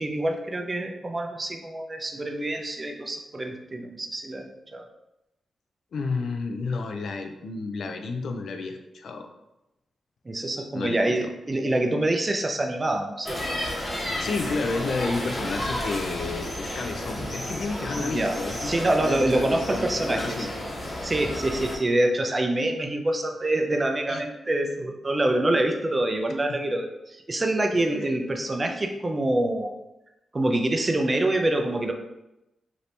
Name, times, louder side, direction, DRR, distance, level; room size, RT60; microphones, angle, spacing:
voice 1, 0.0-4.9 10.3-13.6 18.0-18.3 18.6-20.5 21.0-29.7 30.3-31.9, right 1 dB, 30° right, 3 dB, 0.4 m, -26 dB
voice 2, 5.9-9.3 10.7-11.3 14.2-20.5 24.1-24.2 27.7-28.1, left 4 dB, 75° left, 5 dB, 0.4 m, -31 dB
sound 1, 13.2-21.8, left 1 dB, 35° left, 1.1 m, -32 dB
2.8 x 2.6 x 3.2 m, 0.93 s
cardioid pair, 80°, 0 cm